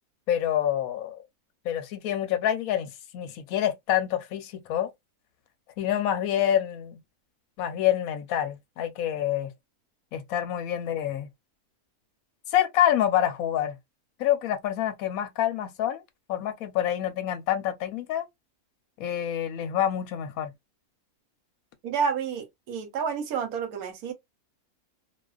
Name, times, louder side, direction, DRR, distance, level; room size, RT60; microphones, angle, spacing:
voice 1, 0.3-1.2 1.6-4.9 5.8-7.0 7.6-9.5 10.1-11.3 12.5-13.8 14.2-16.0 16.3-18.3 19.0-20.5, left 11 dB, 75° left, 1.0 m, -27 dB
voice 2, 21.8-24.1, right 6 dB, 80° right, 1.2 m, -29 dB
2.4 x 2.3 x 2.3 m
omnidirectional pair, 1.5 m